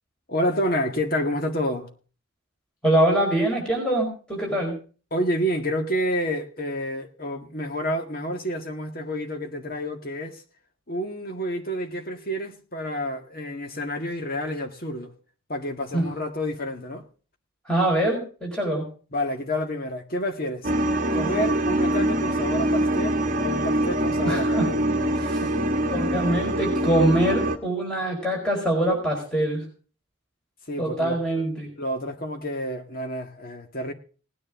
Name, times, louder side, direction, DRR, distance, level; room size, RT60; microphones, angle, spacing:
voice 1, 0.3-1.9 5.1-10.4 10.9-15.1 15.5-17.0 19.1-20.7 21.1-24.6 25.4-25.5 30.7-31.4 31.8-33.9, equal, 45° left, 1.8 m, -29 dB
voice 2, 2.8-4.7 15.9-16.0 17.7-18.8 24.2-24.7 25.1-25.4 25.8-29.6 30.8-31.7, right 1 dB, 5° left, 5.0 m, -24 dB
sound 1, 20.6-27.6, right 1 dB, 40° right, 1.3 m, -24 dB
19.0 x 10.0 x 3.7 m
head